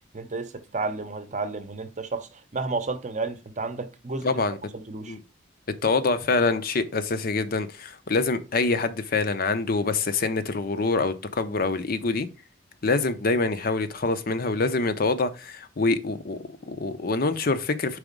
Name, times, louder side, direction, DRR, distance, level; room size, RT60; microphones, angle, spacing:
voice 1, 0.1-4.4 4.7-5.2, right 3 dB, 40° right, 0.7 m, -32 dB
voice 2, 4.2-4.6 5.1-5.2 5.8-12.3 12.8-18.0, left 3 dB, 50° left, 0.6 m, -25 dB
4.9 x 4.0 x 5.2 m
head